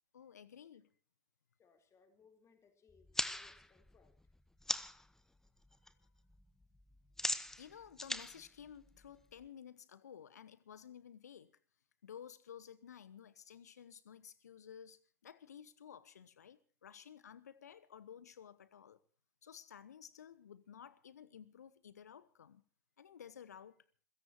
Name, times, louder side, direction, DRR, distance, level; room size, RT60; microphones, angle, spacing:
voice 1, 0.1-0.9 7.6-11.5 12.0-19.0 19.4-22.6 23.0-23.8, left 8 dB, 75° left, 1.1 m, -54 dB
voice 2, 1.6-4.2, left 5 dB, 35° left, 4.0 m, -68 dB
sound 1, 2.9-5.1 5.5-5.9 6.2-9.4, left 1 dB, 5° left, 1.1 m, -40 dB
27.5 x 16.5 x 3.0 m
figure-of-eight pair, 70°, 9 cm